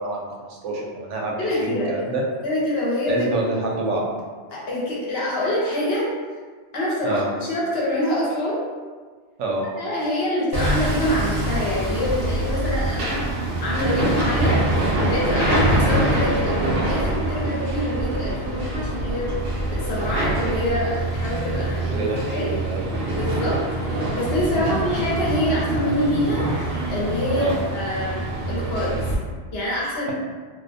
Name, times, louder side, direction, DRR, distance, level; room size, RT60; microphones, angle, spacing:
voice 1, 0.0-2.2 3.1-4.0 7.0-7.3 9.4-9.7 21.7-22.9 24.5-24.7 27.3-27.6, right 2 dB, 85° right, -1 dB, 0.9 m, -27 dB
voice 2, 1.4-1.9 2.4-3.3 4.5-6.1 6.7-8.6 9.8-13.2 13.6-14.6 15.1-19.3 19.7-22.5 23.2-29.0 29.5-30.1, left 1 dB, 65° left, -5 dB, 0.9 m, -25 dB
Hammer, 10.5-29.2, right 1 dB, 60° right, 0.7 m, -24 dB
2.4 x 2.1 x 2.6 m, 1.5 s
omnidirectional pair, 1.2 m